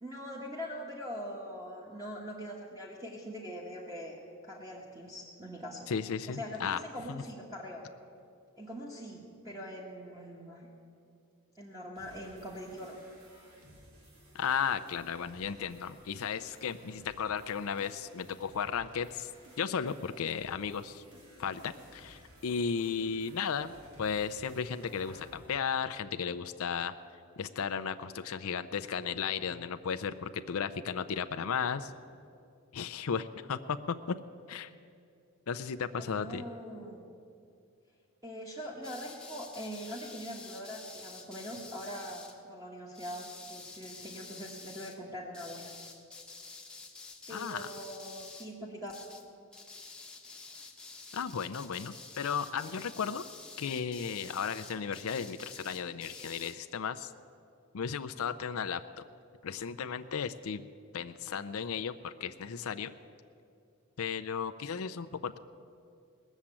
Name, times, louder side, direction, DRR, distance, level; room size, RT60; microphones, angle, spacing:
voice 1, 0.0-5.9 6.3-7.8 8.6-10.7 11.5-12.9 35.9-37.1 38.2-45.7 47.3-48.9, equal, 15° right, -4 dB, 1.3 m, -42 dB
voice 2, 5.9-6.8 7.1-7.2 14.3-19.3 19.6-21.0 21.4-23.7 24.0-26.9 27.4-31.9 32.7-33.8 34.5-34.7 35.5-36.4 47.3-47.7 51.1-53.3 53.6-57.1 57.7-59.0 59.4-60.6 60.9-62.9 64.0-65.4, left 6 dB, 75° left, 10 dB, 0.5 m, -35 dB
sound 1, 12.0-25.5, right 1 dB, 90° right, 3.1 m, -57 dB
sound 2, 38.8-42.3 42.9-45.0 45.3-48.5 48.9-49.3 49.5-56.6, left 3 dB, 5° left, 1.0 m, -49 dB
19.0 x 7.2 x 8.8 m, 2.5 s
head